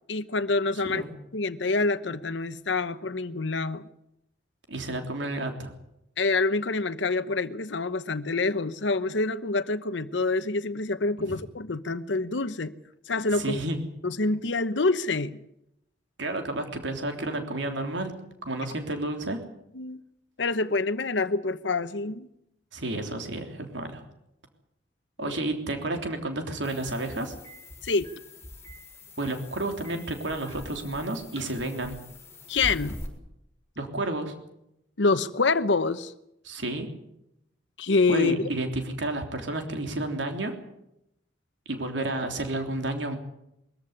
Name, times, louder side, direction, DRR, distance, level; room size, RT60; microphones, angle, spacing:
voice 1, 0.1-1.0 1.3-3.8 6.2-12.7 13.1-13.6 14.0-15.4 19.7-20.0 20.4-22.3 25.2-25.4 27.8-28.1 32.5-33.0 35.0-36.1 37.8-38.5, left 3 dB, 80° left, 0.9 m, -26 dB
voice 2, 4.7-5.7 11.2-11.4 13.3-13.8 16.2-18.1 18.4-19.4 22.7-24.0 25.2-27.3 29.2-32.0 33.8-34.3 36.4-36.9 38.1-40.5 41.6-43.2, right 2 dB, 80° right, 3.4 m, -31 dB
sound 1, 26.6-33.1, left 1 dB, 15° left, 4.6 m, -43 dB
22.0 x 14.5 x 9.8 m
head